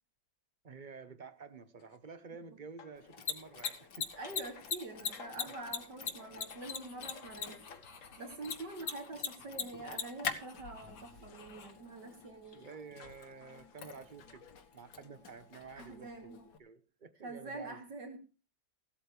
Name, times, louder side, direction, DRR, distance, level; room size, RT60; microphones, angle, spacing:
voice 1, 0.6-4.1 12.5-14.5 14.7-17.8, right 5 dB, 35° right, 0.9 m, -50 dB
sound 1, 1.8-2.0 2.8-8.8 10.0-11.6 12.0-16.2, left 5 dB, 50° left, 1.2 m, -57 dB
Mechanisms, 3.0-16.6, left 6 dB, 65° left, 2.0 m, -43 dB
voice 2, 4.2-7.6 8.2-12.7 15.8-16.4 17.2-18.2, right 2 dB, 65° right, 3.5 m, -45 dB
sound 2, 6.5-11.8, left 5 dB, 85° left, 2.6 m, -57 dB
16.0 x 12.5 x 3.3 m
omnidirectional pair, 2.0 m